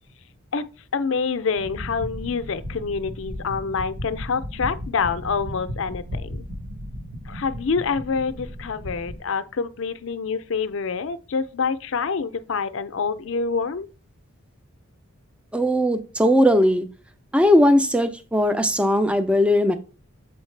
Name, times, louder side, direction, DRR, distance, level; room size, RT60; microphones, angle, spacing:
voice 1, 0.9-6.4 7.3-13.9, left 5 dB, 60° left, 0.5 m, -26 dB
sound 1, 1.5-9.2, equal, 60° right, 1.4 m, -35 dB
voice 2, 15.5-16.8 17.3-19.8, equal, 5° right, 0.4 m, -18 dB
7.1 x 4.5 x 3.2 m
head